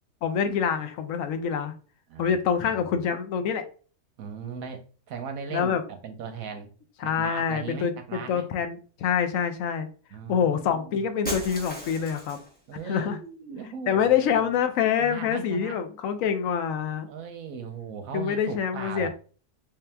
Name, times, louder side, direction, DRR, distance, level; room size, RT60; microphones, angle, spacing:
voice 1, 0.2-1.7 2.2-3.6 5.5-5.8 7.0-9.9 10.3-12.4 12.9-13.2 13.9-17.1 18.1-19.1, left 7 dB, 70° left, 8 dB, 0.8 m, -26 dB
voice 2, 4.2-6.7 7.0-8.5 10.1-11.0 12.7-14.5 15.0-15.8 17.1-19.1, right 6 dB, 70° right, 6 dB, 0.9 m, -38 dB
Shatter, 11.2-12.6, right 1 dB, 5° left, 0.8 m, -35 dB
3.3 x 2.8 x 3.3 m, 0.39 s
omnidirectional pair, 1.7 m